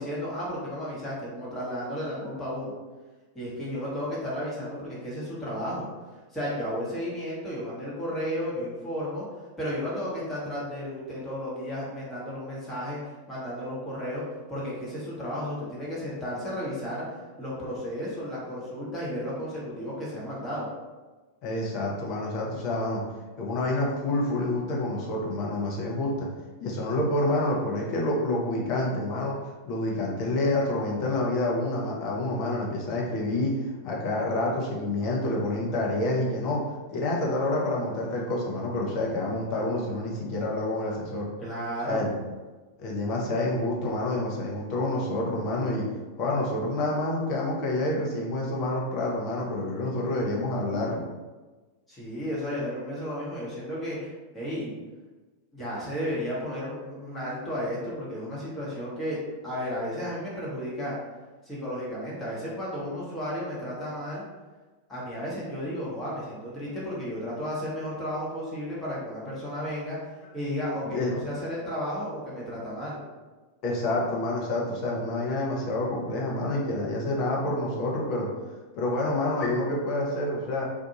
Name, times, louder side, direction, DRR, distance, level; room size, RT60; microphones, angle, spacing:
voice 1, 0.0-2.7 3.3-5.9 6.3-9.2 9.6-13.0 13.3-14.2 14.5-17.0 17.4-20.7 41.4-42.1 51.9-54.7 55.5-59.2 59.4-61.0 61.4-64.2 64.9-70.0 70.3-73.0, equal, 15° left, -7 dB, 1.1 m, -33 dB
voice 2, 21.4-23.0 23.4-26.3 26.6-29.3 29.7-36.6 36.9-41.3 41.8-42.1 42.8-45.8 46.2-51.0 70.9-71.1 73.6-78.3 78.7-80.6, left 1 dB, 40° left, -3 dB, 0.7 m, -28 dB
2.6 x 2.3 x 2.8 m, 1.3 s
figure-of-eight pair, 90°, 0 cm